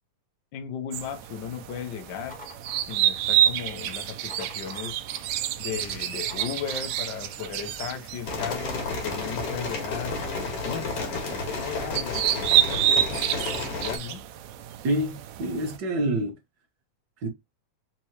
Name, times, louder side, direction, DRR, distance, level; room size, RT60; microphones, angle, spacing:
voice 1, 0.5-2.4 2.9-5.0 5.6-10.2 10.6-14.2, left 8 dB, 75° left, 1.0 m, -36 dB
sound 1, 0.9-15.8, right 11 dB, 75° right, 1.6 m, -29 dB
sound 2, 2.3-3.4 4.0-5.4 5.8-7.3 8.0-9.3, equal, 10° left, 0.5 m, -47 dB
sound 3, 8.3-14.0, left 3 dB, 55° left, 2.5 m, -32 dB
voice 2, 14.8-16.4 17.2-17.3, right 1 dB, 50° right, 1.4 m, -27 dB
5.2 x 3.0 x 2.9 m
omnidirectional pair, 3.5 m